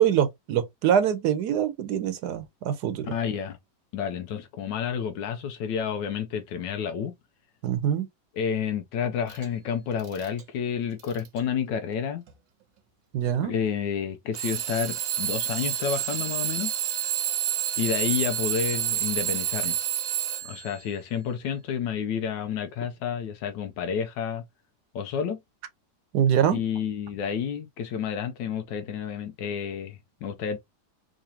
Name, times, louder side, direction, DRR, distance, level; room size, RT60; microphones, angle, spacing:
voice 1, 0.0-3.1 7.6-8.1 13.1-13.5 26.1-26.6, right 9 dB, 70° right, 1.2 m, -24 dB
voice 2, 3.0-3.6 3.9-7.1 8.4-12.2 13.4-16.7 17.8-19.8 20.4-24.4 24.9-25.4 26.5-30.6, left 7 dB, 80° left, 1.3 m, -30 dB
Alarm / Clock, 9.3-9.4 10.0-10.4 11.0-11.4 12.3-12.4 14.3-20.7, right 11 dB, 85° right, 1.5 m, -29 dB
3.8 x 3.1 x 2.7 m
omnidirectional pair, 1.9 m